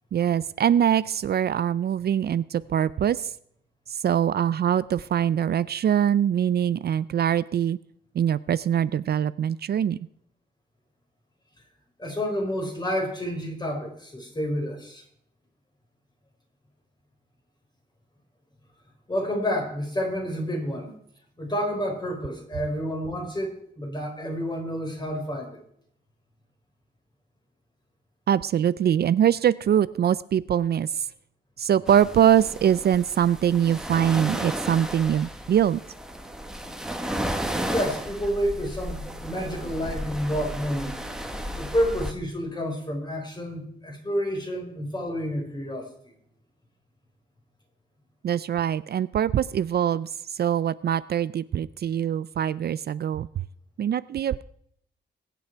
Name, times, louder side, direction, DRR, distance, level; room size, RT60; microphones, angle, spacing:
voice 1, 0.1-3.3 3.9-7.8 8.1-10.0 28.3-31.1 31.6-35.8 48.2-53.3 53.8-54.4, right 9 dB, 60° right, 17 dB, 0.4 m, -23 dB
voice 2, 12.0-15.0 19.1-20.9 21.4-25.6 37.7-41.0 41.5-45.9, equal, 25° left, 2 dB, 4.2 m, -29 dB
sound 1, 31.9-42.1, equal, 5° right, 1.4 m, -34 dB
22.0 x 9.2 x 4.6 m, 0.68 s
wide cardioid pair, 130°, 19 cm